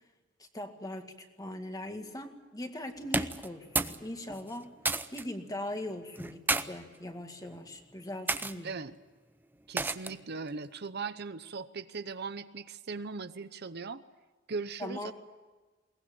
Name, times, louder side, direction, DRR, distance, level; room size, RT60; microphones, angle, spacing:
voice 1, 0.4-4.7 5.1-8.7 14.8-15.1, left 1 dB, 20° left, 5 dB, 2.1 m, -40 dB
sound 1, 3.0-4.0 4.3-5.3 6.2-6.7 7.4-7.7 8.3-8.5 9.8-10.2, right 3 dB, 10° right, 0.7 m, -31 dB
voice 2, 8.6-9.0 9.7-14.0 14.5-15.1, right 4 dB, 55° right, 12 dB, 0.8 m, -39 dB
22.0 x 19.5 x 8.7 m, 1.3 s
head